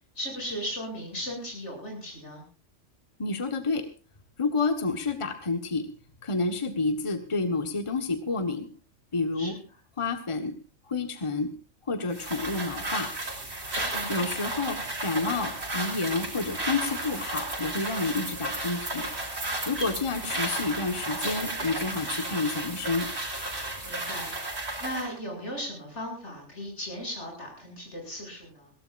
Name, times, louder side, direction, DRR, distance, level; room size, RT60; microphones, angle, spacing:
voice 1, 0.1-2.4 9.3-9.6 13.9-14.2 19.7-20.1 23.8-24.3 24.8-28.7, equal, 65° left, 0 dB, 8.2 m, -37 dB
voice 2, 3.2-3.9 4.4-5.9 6.2-8.7 9.1-9.5 10.0-10.5 10.9-11.5 11.9-13.1 14.1-19.1 19.7-23.1, left 3 dB, 25° left, 7 dB, 1.4 m, -29 dB
sound 1, 12.1-25.1, right 2 dB, 55° right, 4.4 m, -33 dB
22.0 x 17.5 x 2.5 m, 0.35 s
omnidirectional pair, 1.3 m